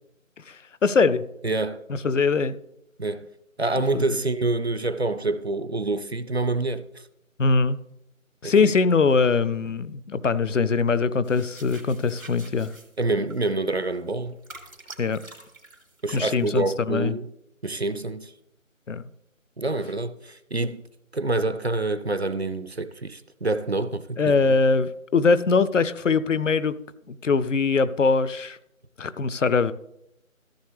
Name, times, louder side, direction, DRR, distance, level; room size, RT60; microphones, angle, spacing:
voice 1, 0.5-1.2 1.9-2.6 3.9-4.0 7.4-7.8 8.4-12.7 15.0-15.2 16.1-17.1 18.9-19.0 24.2-26.8 27.1-28.6 29.0-29.7, left 4 dB, 65° left, 0.6 m, -22 dB
voice 2, 1.4-1.8 3.0-3.3 3.6-6.8 8.4-8.7 13.0-14.4 16.0-17.3 17.6-18.3 19.6-20.8 21.1-24.5, right 2 dB, 50° right, 0.5 m, -27 dB
sound 1, 11.2-16.8, right 2 dB, 90° right, 2.9 m, -47 dB
14.5 x 7.1 x 3.3 m
figure-of-eight pair, 170°, 41 cm